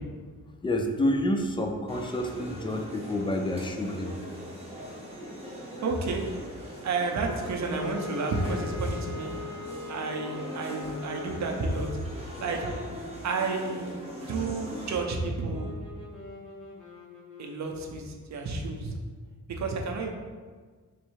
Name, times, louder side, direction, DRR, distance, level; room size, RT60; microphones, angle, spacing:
voice 1, 0.6-4.2, left 1 dB, 15° left, 4 dB, 0.3 m, -28 dB
sound 1, 1.9-15.0, equal, 20° right, 0.7 m, -41 dB
voice 2, 5.8-6.2 6.8-9.3 9.9-12.0 12.4-12.7 13.2-15.8 17.4-19.0 19.5-20.1, right 3 dB, 55° right, 2 dB, 0.6 m, -31 dB
sound 2, 7.6-18.1, left 1 dB, 65° left, 1.2 m, -45 dB
sound 3, 7.7-12.1, left 8 dB, 45° left, 0.8 m, -41 dB
3.5 x 3.2 x 3.1 m, 1.5 s
wide cardioid pair, 105°, 33 cm